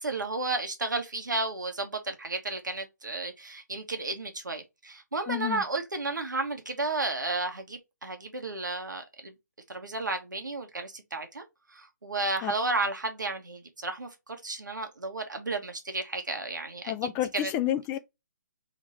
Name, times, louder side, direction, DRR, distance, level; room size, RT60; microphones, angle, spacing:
voice 1, 0.0-9.3 9.7-11.4 11.7-16.9 17.3-17.5, right 3 dB, 90° right, 1.3 m, -33 dB
voice 2, 5.3-5.6 12.4-12.5 16.9-18.0, left 11 dB, 15° left, 0.4 m, -29 dB
3.6 x 3.1 x 4.3 m
figure-of-eight pair, 145°, 10 cm